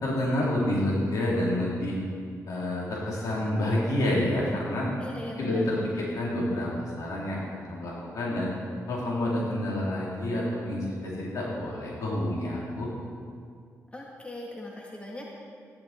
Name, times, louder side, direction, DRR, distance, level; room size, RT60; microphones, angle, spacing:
voice 1, 0.0-2.0 2.5-4.9 5.4-8.5 8.9-12.9, left 1 dB, 70° left, -5 dB, 3.9 m, -28 dB
voice 2, 5.0-5.6 6.0-6.1 13.9-15.3, left 1 dB, 20° left, -2 dB, 2.0 m, -39 dB
14.0 x 11.0 x 4.6 m, 2.2 s
cardioid pair, 65°, 6 cm